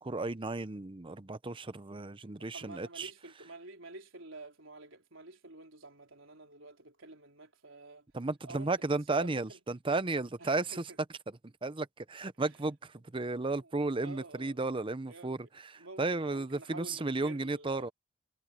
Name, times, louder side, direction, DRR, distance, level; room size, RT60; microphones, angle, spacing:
voice 1, 0.0-3.1 8.1-10.8 11.6-15.4 15.7-17.9, right 3 dB, 25° right, 0.7 m, -34 dB
voice 2, 2.2-8.1 8.4-9.6 10.4-11.0 12.4-12.5 13.6-13.7 14.0-14.6 15.1-15.4 15.8-17.9, right 2 dB, 75° right, 3.9 m, -50 dB
head